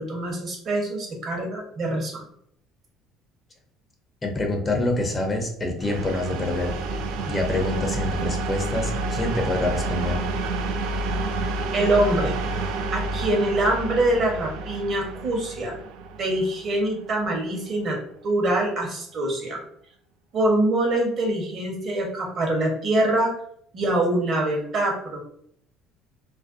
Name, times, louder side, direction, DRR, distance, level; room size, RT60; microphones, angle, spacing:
voice 1, 0.0-2.2 11.7-12.4 12.9-15.8 16.2-18.0 18.2-19.6 20.3-23.3 23.7-25.3, right 1 dB, 50° right, 0 dB, 0.9 m, -24 dB
voice 2, 4.2-7.0 7.3-10.2, left 2 dB, 25° left, 3 dB, 0.6 m, -26 dB
sound 1, 5.8-17.4, right 2 dB, 75° right, 0.3 m, -29 dB
2.5 x 2.0 x 2.5 m, 0.67 s
supercardioid pair, 85°, 0 cm